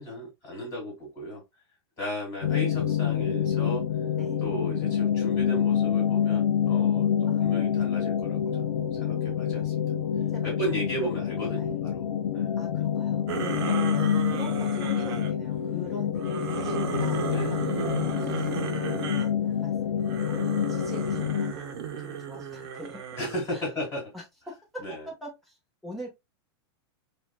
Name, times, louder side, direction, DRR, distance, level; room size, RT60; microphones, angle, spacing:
voice 1, 0.0-1.4 2.0-3.8 4.4-9.8 10.4-12.5 13.6-14.0 17.3-17.5 18.2-18.4 23.2-24.1 24.8-25.1, equal, 25° left, 2.5 m, -35 dB
sound 1, 2.4-21.5, left 9 dB, 80° left, 0.5 m, -27 dB
voice 2, 10.3-10.7 11.0-11.1 11.6-11.9 12.6-13.3 13.9-23.0 23.5-23.6 24.1-25.6 25.8-26.1, equal, ahead, 1.3 m, -44 dB
sound 2, 13.3-15.3 16.1-19.3 20.0-23.5, right 7 dB, 60° right, 0.9 m, -34 dB
4.8 x 2.6 x 2.2 m
supercardioid pair, 160°, 14 cm